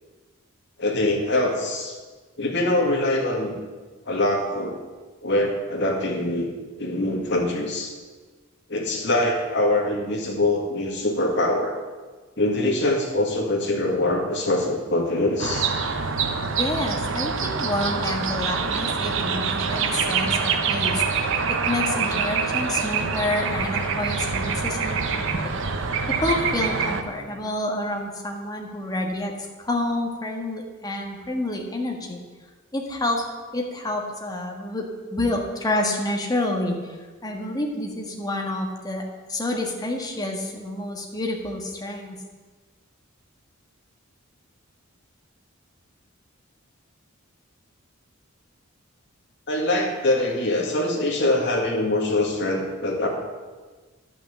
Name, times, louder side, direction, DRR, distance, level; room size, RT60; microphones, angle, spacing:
voice 1, 0.8-1.9 2.4-3.6 4.1-4.8 5.2-6.5 6.8-7.9 8.7-11.8 12.4-15.7 49.5-53.1, left 1 dB, 60° left, 0 dB, 2.0 m, -23 dB
sound 1, 15.4-27.0, right 5 dB, 65° right, 0.8 m, -25 dB
voice 2, 16.6-21.3 21.6-25.5 26.1-29.3 29.6-32.2 32.7-33.2 33.5-34.8 35.1-37.0 37.2-42.2, left 1 dB, 20° left, 1 dB, 1.5 m, -28 dB
10.5 x 6.0 x 7.4 m, 1.4 s
head